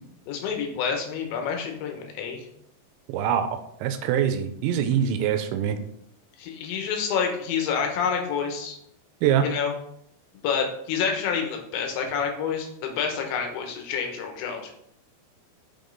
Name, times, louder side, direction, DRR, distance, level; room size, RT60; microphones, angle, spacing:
voice 1, 0.3-2.5 6.4-8.8 9.4-9.7 10.4-14.7, left 6 dB, 80° left, 3 dB, 3.3 m, -28 dB
voice 2, 3.1-5.8 9.2-9.5, right 9 dB, 85° right, 8 dB, 2.8 m, -24 dB
7.0 x 5.3 x 3.9 m, 0.73 s
omnidirectional pair, 5.2 m